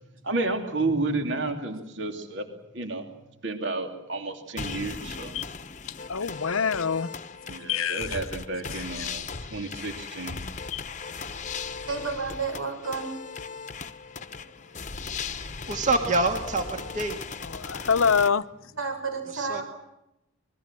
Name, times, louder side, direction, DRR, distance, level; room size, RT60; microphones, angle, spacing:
voice 1, 0.2-2.5 2.7-3.1 3.4-5.3 7.5-10.4, right 2 dB, 55° right, 2.8 m, -31 dB
sound 1, 4.6-18.3, left 5 dB, 35° left, 1.1 m, -38 dB
voice 2, 5.9-7.1 7.7-8.2 8.7-9.2 10.7-10.8 17.4-18.4, left 6 dB, 80° left, 0.9 m, -26 dB
voice 3, 11.9-13.1 14.8-14.9 15.3-15.4 18.8-19.6, right 4 dB, 75° right, 7.4 m, -31 dB
voice 4, 15.7-17.2 19.3-19.6, right 2 dB, 35° right, 2.2 m, -26 dB
26.5 x 21.5 x 7.6 m
head